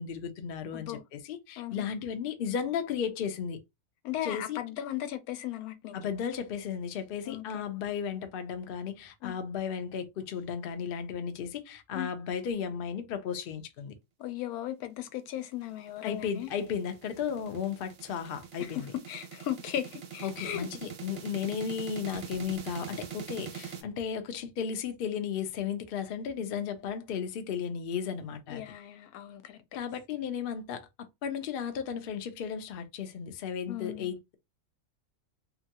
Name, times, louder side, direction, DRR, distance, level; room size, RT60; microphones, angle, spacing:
voice 1, 0.0-3.6 4.2-4.6 5.9-13.9 16.0-18.9 20.2-28.6 29.7-34.3, left 7 dB, 65° left, 0.5 m, -35 dB
voice 2, 0.7-1.0 1.6-1.8 4.0-6.0 7.2-7.7 9.2-9.3 11.9-12.1 14.2-16.5 18.6-20.7 28.5-29.8 33.7-34.2, left 12 dB, 90° left, 1.1 m, -37 dB
sound 1, 15.7-23.8, right 8 dB, 55° right, 0.7 m, -43 dB
2.9 x 2.3 x 2.7 m
omnidirectional pair, 1.5 m